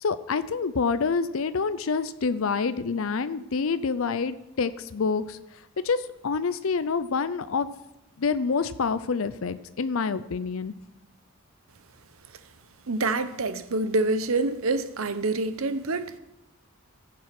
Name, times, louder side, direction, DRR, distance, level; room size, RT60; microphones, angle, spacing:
voice 1, 0.0-5.4 5.8-7.7 8.2-10.7, left 5 dB, 70° left, 0.5 m, -27 dB
voice 2, 12.9-16.2, right 3 dB, 75° right, 0.9 m, -26 dB
15.0 x 7.4 x 5.9 m
head